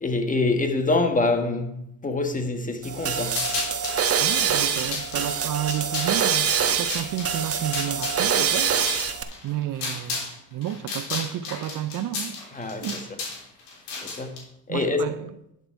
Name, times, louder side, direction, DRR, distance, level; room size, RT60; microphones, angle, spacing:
voice 1, 0.0-1.8 2.0-3.4 12.5-13.0 14.0-14.4 14.7-15.1, left 3 dB, 20° left, 1.4 m, -25 dB
sound 1, 2.8-9.2, right 7 dB, 35° right, 1.1 m, -25 dB
sound 2, 3.3-4.0 4.6-10.3 10.6-14.4, left 4 dB, 85° left, 3.5 m, -33 dB
voice 2, 4.2-12.5 12.8-13.2 14.1-14.2 14.7-15.4, right 11 dB, 55° right, 0.7 m, -32 dB
11.0 x 6.6 x 4.6 m
supercardioid pair, 85°, 39 cm